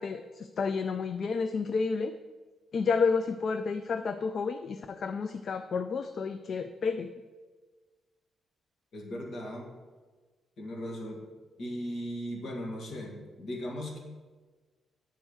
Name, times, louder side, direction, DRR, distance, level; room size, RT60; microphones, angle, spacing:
voice 1, 0.0-2.1 2.7-7.1, left 5 dB, 50° left, 9 dB, 0.3 m, -30 dB
voice 2, 8.9-9.7 10.6-11.2 11.6-14.0, equal, 65° left, 0 dB, 1.9 m, -37 dB
8.7 x 4.4 x 6.3 m, 1.4 s
cardioid pair, 135°, 0 cm